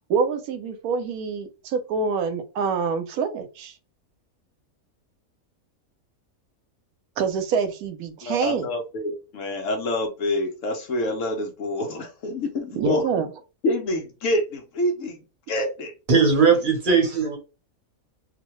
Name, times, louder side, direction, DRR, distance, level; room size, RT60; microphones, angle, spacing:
voice 1, 0.1-3.7 7.2-8.7 12.7-13.3, right 5 dB, 90° right, 1.1 m, -26 dB
voice 2, 8.2-13.3 13.6-15.2 15.5-15.9 16.7-16.8, left 1 dB, 65° left, 1.0 m, -27 dB
voice 3, 16.1-17.4, right 5 dB, 45° right, 0.9 m, -18 dB
2.8 x 2.1 x 3.0 m
omnidirectional pair, 1.5 m